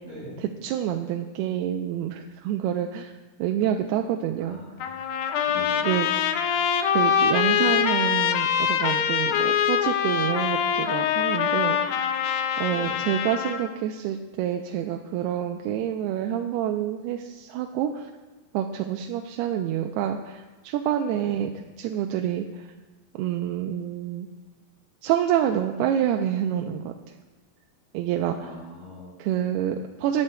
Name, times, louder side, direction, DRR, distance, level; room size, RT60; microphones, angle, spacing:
voice 1, 0.4-3.1 3.4-4.6 5.8-6.1 6.9-12.0 12.6-18.1 18.5-22.5 23.2-24.3 25.0-26.9 27.9-28.5 29.2-30.2, right 10 dB, 90° right, 3 dB, 2.6 m, -27 dB
voice 2, 4.4-4.8 5.5-5.9 12.7-13.0 21.1-21.4 28.4-29.1, left 1 dB, 35° left, -9 dB, 5.1 m, -41 dB
Trumpet, 4.8-13.7, left 8 dB, 80° left, 2.3 m, -24 dB
20.0 x 10.5 x 2.2 m, 1.2 s
omnidirectional pair, 4.5 m